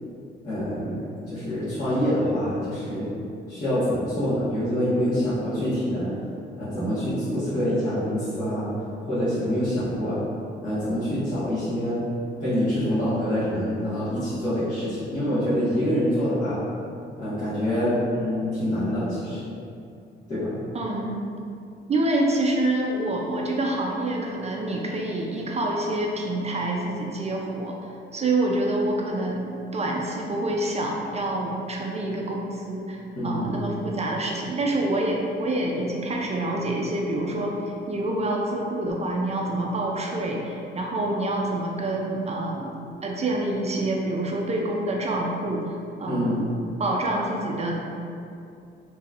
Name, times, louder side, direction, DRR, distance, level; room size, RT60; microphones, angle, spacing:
voice 1, 0.4-1.0 1.3-3.1 3.5-6.1 6.6-8.7 9.1-10.2 10.6-12.0 12.4-16.6 17.2-19.5 20.3-20.5 33.1-33.5 46.0-46.4, equal, 40° left, -15 dB, 1.4 m, -26 dB
voice 2, 20.7-21.3 21.9-27.8 28.1-42.7 43.0-47.7, right 1 dB, 35° right, -1 dB, 0.4 m, -27 dB
4.0 x 3.0 x 2.5 m, 2.5 s
cardioid pair, 90°, 20 cm